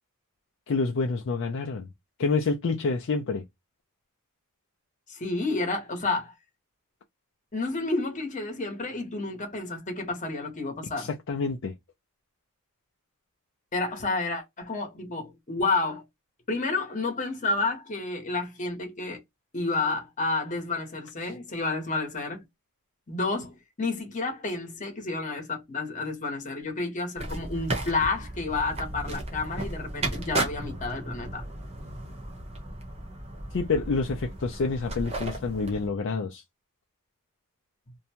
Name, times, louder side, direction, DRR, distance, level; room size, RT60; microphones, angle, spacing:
voice 1, 0.7-1.9 2.2-3.4 11.0-11.8 21.2-21.3 33.5-36.4, left 4 dB, 55° left, 0.4 m, -28 dB
voice 2, 5.1-6.3 7.5-11.1 13.7-16.0 16.5-19.2 19.5-22.4 23.1-31.4, left 3 dB, 35° left, 1.0 m, -30 dB
sound 1, 27.2-35.9, right 1 dB, 30° right, 0.9 m, -35 dB
2.6 x 2.1 x 2.8 m
head